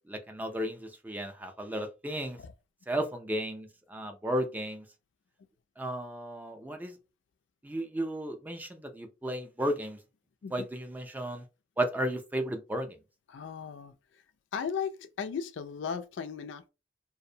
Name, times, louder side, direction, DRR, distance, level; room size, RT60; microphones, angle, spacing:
voice 1, 0.1-2.4 2.9-4.8 5.8-7.0 7.6-10.0 10.5-11.4 11.8-13.0, right 1 dB, 10° right, 0.4 m, -34 dB
voice 2, 13.3-14.2 14.5-16.7, left 6 dB, 85° left, 0.3 m, -37 dB
2.5 x 2.0 x 2.7 m
head